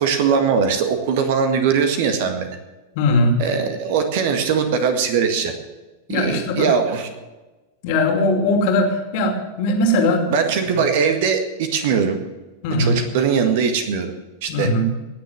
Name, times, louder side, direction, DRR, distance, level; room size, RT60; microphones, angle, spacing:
voice 1, 0.0-2.6 3.4-5.5 6.1-7.1 10.3-12.2 12.8-14.1 14.4-14.7, right 6 dB, 50° right, 6 dB, 1.8 m, -20 dB
voice 2, 2.9-3.4 6.1-6.7 7.8-10.3 10.7-10.8 12.6-13.0 14.5-14.9, left 1 dB, 45° left, 3 dB, 2.6 m, -19 dB
18.0 x 7.0 x 7.7 m, 1.2 s
figure-of-eight pair, 90°, 0 cm